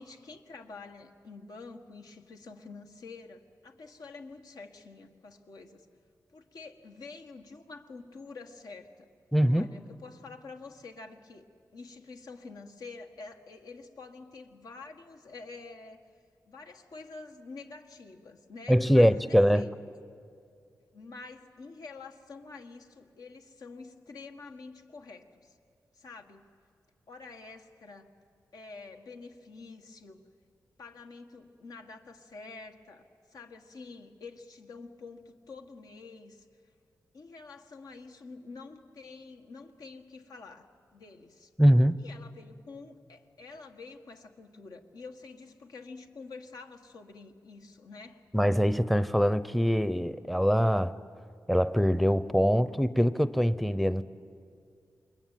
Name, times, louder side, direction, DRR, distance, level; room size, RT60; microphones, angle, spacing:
voice 1, 0.0-5.9 6.3-9.1 9.5-16.0 16.4-19.7 20.9-25.6 25.9-26.5 27.1-28.1 28.5-30.2 30.8-36.5 37.1-41.5 42.0-48.2, left 4 dB, 80° left, 4 dB, 1.8 m, -47 dB
voice 2, 9.3-9.7 18.7-19.6 41.6-42.0 48.3-50.9 51.5-54.0, equal, ahead, 14 dB, 0.7 m, -23 dB
28.0 x 22.5 x 9.2 m, 2.4 s
wide cardioid pair, 95°, 6 cm